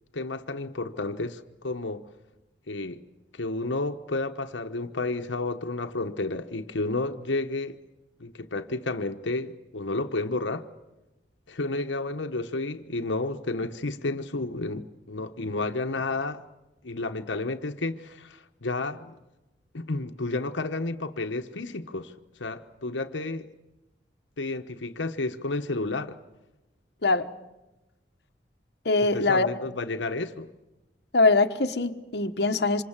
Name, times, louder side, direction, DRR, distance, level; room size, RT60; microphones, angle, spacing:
voice 1, 0.1-2.1 2.7-3.0 3.3-7.8 8.2-10.7 11.5-16.4 16.8-19.1 19.7-22.1 22.4-23.5 24.4-26.2 29.1-30.5, left 2 dB, 85° left, 1.2 m, -31 dB
voice 2, 28.8-29.5 31.1-32.8, left 3 dB, 60° left, 1.3 m, -22 dB
27.5 x 26.0 x 7.4 m
head